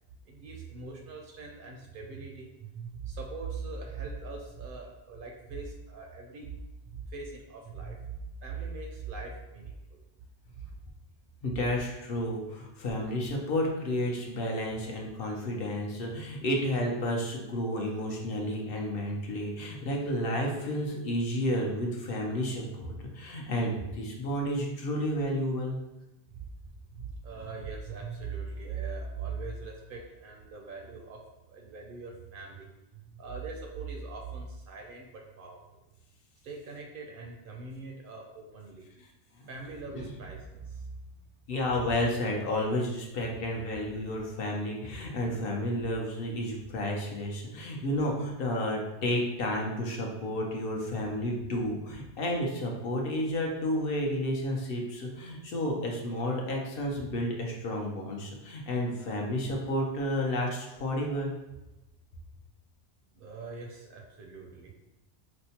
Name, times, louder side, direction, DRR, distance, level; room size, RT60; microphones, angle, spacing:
voice 1, 0.3-6.6 6.8-10.0 10.5-10.7 26.4-26.5 26.9-31.2 31.5-35.6 36.4-38.9 39.5-40.9 63.1-64.7, right 4 dB, 60° right, 0 dB, 0.7 m, -41 dB
voice 2, 11.4-25.8 39.0-39.1 39.4-39.5 39.9-40.1 41.5-61.3, left 1 dB, 65° left, 0 dB, 0.8 m, -31 dB
4.3 x 2.1 x 2.8 m, 0.97 s
omnidirectional pair, 1.1 m